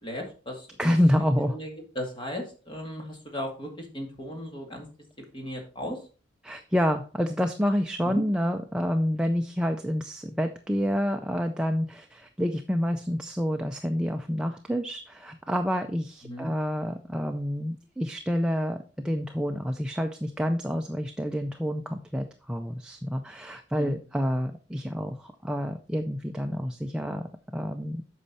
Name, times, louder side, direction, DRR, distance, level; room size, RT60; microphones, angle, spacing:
voice 1, 0.0-1.0 1.5-1.7 2.0-4.9 5.3-6.0 8.0-8.2 16.2-16.5 23.7-24.0, equal, 25° left, 1 dB, 2.1 m, -36 dB
voice 2, 0.8-1.6 6.4-27.2 27.5-28.0, equal, 5° right, 4 dB, 0.4 m, -28 dB
8.3 x 5.5 x 4.2 m, 0.36 s
head